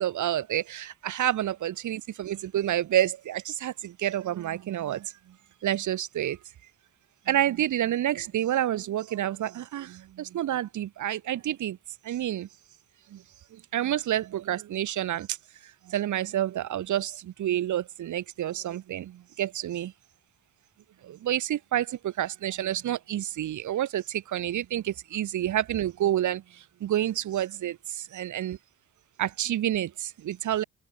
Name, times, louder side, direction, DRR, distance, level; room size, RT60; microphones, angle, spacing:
voice 1, 0.0-5.1 5.6-6.4 7.3-11.8 12.0-12.5 13.1-13.2 13.5-15.4 15.6-19.9 21.0-28.6 29.2-30.6, right 12 dB, 75° right, 6.3 m, -29 dB
cardioid pair, 90°, 30 cm